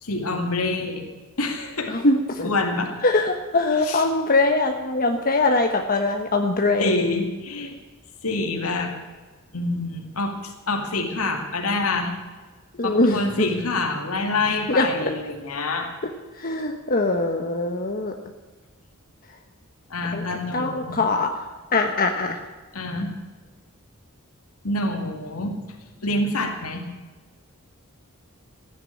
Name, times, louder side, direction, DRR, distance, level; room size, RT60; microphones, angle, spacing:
voice 1, 0.0-1.1 1.4-1.9 2.4-2.9 3.8-4.0 6.8-7.7 8.2-9.0 9.5-12.1 12.8-15.9 19.9-21.0 22.7-23.1 24.6-25.6 26.0-26.8, left 2 dB, 80° left, 2 dB, 2.4 m, -26 dB
voice 2, 1.9-2.5 3.0-7.0 12.8-13.5 14.7-14.9 16.4-18.1 20.1-20.2 20.5-21.3 21.7-22.4, left 2 dB, 40° left, 4 dB, 1.1 m, -22 dB
15.5 x 10.5 x 8.5 m, 1.3 s
head